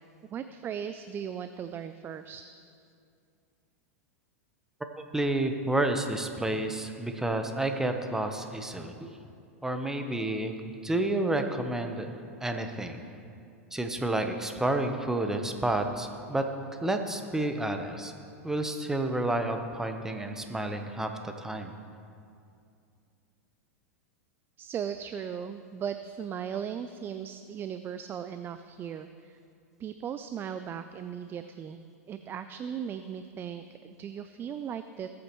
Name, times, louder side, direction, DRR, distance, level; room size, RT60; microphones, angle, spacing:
voice 1, 0.3-2.4 24.6-29.4 29.8-35.1, right 8 dB, 25° right, 10 dB, 0.4 m, -37 dB
voice 2, 5.1-9.2 9.6-12.1 12.4-13.0 13.7-16.4 16.8-18.1 18.4-21.7, right 1 dB, 5° right, 5 dB, 0.9 m, -30 dB
19.5 x 8.5 x 3.1 m, 2.4 s
hypercardioid pair, 110°, 8 cm